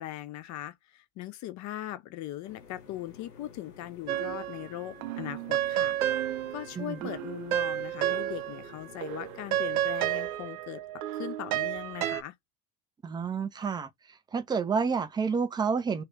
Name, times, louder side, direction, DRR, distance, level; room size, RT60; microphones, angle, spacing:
voice 1, 0.0-10.8 11.1-12.3, left 13 dB, 40° left, 0.6 m, -40 dB
sound 1, 2.4-9.9, left 6 dB, 90° left, 1.0 m, -52 dB
sound 2, 4.1-4.7 5.0-8.7 9.0-12.2, right 12 dB, 70° right, 0.6 m, -31 dB
voice 2, 6.8-7.1 13.0-13.9 14.3-16.0, right 5 dB, 10° right, 0.3 m, -29 dB
2.8 x 2.4 x 3.3 m
figure-of-eight pair, 75°, 45 cm